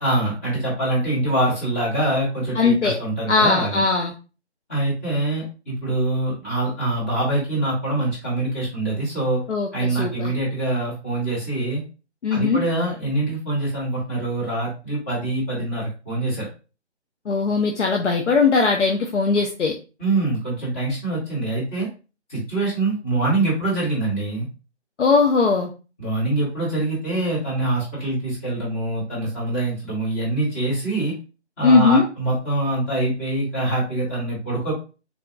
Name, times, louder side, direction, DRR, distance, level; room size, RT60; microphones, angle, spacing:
voice 1, 0.0-3.8 4.7-9.4 9.7-11.8 12.3-16.5 20.0-21.9 22.3-24.5 26.0-31.1 31.6-34.7, right 2 dB, 10° left, -6 dB, 0.8 m, -24 dB
voice 2, 2.6-3.0 3.3-4.1 9.5-10.3 12.2-12.6 17.3-19.8 25.0-25.7 31.6-32.0, left 4 dB, 85° left, 2 dB, 0.6 m, -19 dB
3.6 x 2.2 x 2.4 m, 0.33 s
figure-of-eight pair, 150°, 34 cm